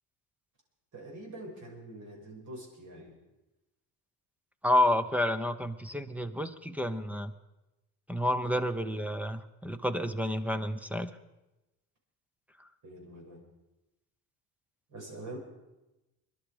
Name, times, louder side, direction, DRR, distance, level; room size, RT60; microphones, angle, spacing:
voice 1, 0.9-3.2 12.8-13.4 14.9-15.4, right 1 dB, 55° right, -1 dB, 6.2 m, -45 dB
voice 2, 4.6-7.3 8.1-11.1, left 1 dB, 5° right, 11 dB, 0.9 m, -29 dB
22.0 x 11.5 x 5.1 m, 0.99 s
cardioid pair, 95°, 36 cm